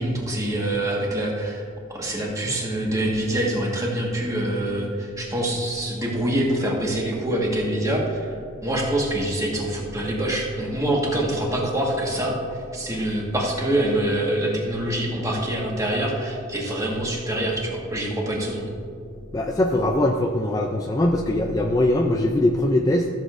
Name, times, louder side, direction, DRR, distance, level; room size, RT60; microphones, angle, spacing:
voice 1, 0.0-1.7 1.9-8.4 8.6-12.3 12.7-18.6, right 1 dB, 15° right, -2 dB, 1.5 m, -25 dB
voice 2, 19.3-23.1, left 1 dB, 20° left, 2 dB, 0.4 m, -21 dB
14.5 x 7.3 x 2.5 m, 2.3 s
head